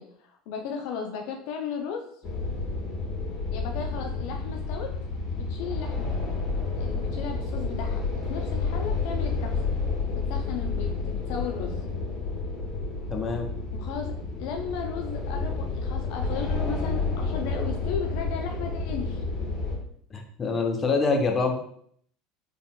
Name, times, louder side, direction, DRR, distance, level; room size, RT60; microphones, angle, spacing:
voice 1, 0.0-2.2 3.5-4.9 5.3-6.1 6.8-9.6 10.1-11.9 13.7-19.2, left 6 dB, 65° left, 3 dB, 0.4 m, -36 dB
sound 1, 2.2-19.8, left 3 dB, 50° left, 1.5 m, -30 dB
voice 2, 13.1-13.5 20.1-21.5, left 4 dB, 30° left, 2 dB, 0.8 m, -25 dB
4.1 x 3.4 x 2.3 m, 0.64 s
hypercardioid pair, 75°, 0 cm